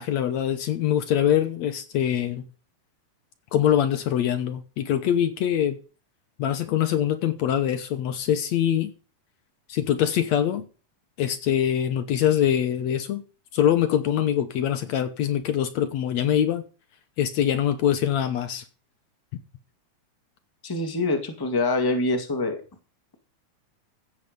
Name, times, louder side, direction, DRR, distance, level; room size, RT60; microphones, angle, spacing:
voice 1, 0.0-2.5 3.5-5.8 6.4-8.9 9.7-10.6 11.2-13.2 13.5-16.6 17.2-18.6, left 10 dB, 70° left, 2.1 m, -23 dB
voice 2, 20.6-22.6, left 2 dB, 10° left, 1.5 m, -25 dB
15.0 x 8.1 x 5.3 m
omnidirectional pair, 3.5 m